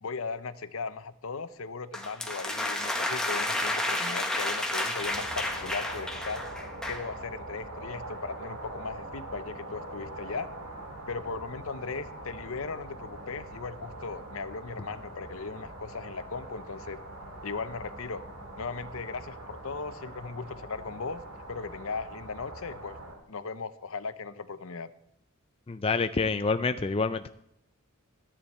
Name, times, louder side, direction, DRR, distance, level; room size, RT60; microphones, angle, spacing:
voice 1, 0.0-6.4 6.9-10.5 11.1-17.0 17.4-18.2 18.6-21.2 21.5-23.0 23.3-24.9, left 4 dB, 65° left, 13 dB, 0.7 m, -37 dB
sound 1, 1.9-7.1, left 1 dB, 5° left, 1.2 m, -31 dB
sound 2, 5.0-23.1, right 1 dB, 65° right, 2.6 m, -43 dB
voice 2, 25.7-27.3, left 4 dB, 25° left, 9 dB, 0.4 m, -27 dB
13.5 x 10.0 x 4.3 m, 0.80 s
head